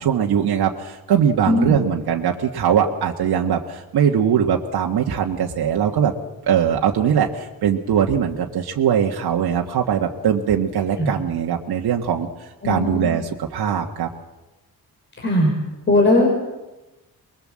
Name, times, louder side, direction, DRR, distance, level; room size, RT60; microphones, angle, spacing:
voice 1, 0.0-6.1 6.5-12.3 12.6-14.1, right 8 dB, 85° right, 1 dB, 1.7 m, -21 dB
voice 2, 1.5-1.8 11.0-11.1 12.6-13.1 15.2-15.5 15.9-16.3, left 1 dB, 30° left, -1 dB, 4.7 m, -18 dB
23.5 x 22.0 x 7.6 m, 1.1 s
wide cardioid pair, 175°, 37 cm